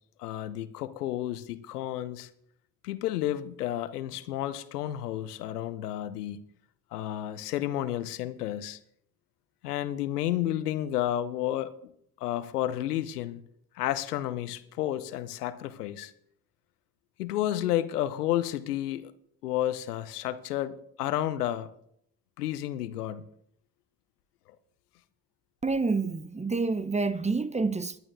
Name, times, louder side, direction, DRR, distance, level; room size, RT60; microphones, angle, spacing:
voice 1, 0.2-2.3 2.8-6.4 6.9-8.8 9.6-11.7 12.2-13.4 13.8-16.1 17.2-19.1 19.4-21.7 22.4-23.3, left 13 dB, 85° left, 0.7 m, -31 dB
voice 2, 25.6-28.0, right 4 dB, 15° right, 0.8 m, -28 dB
20.5 x 10.5 x 2.6 m
hypercardioid pair, 45°, 45 cm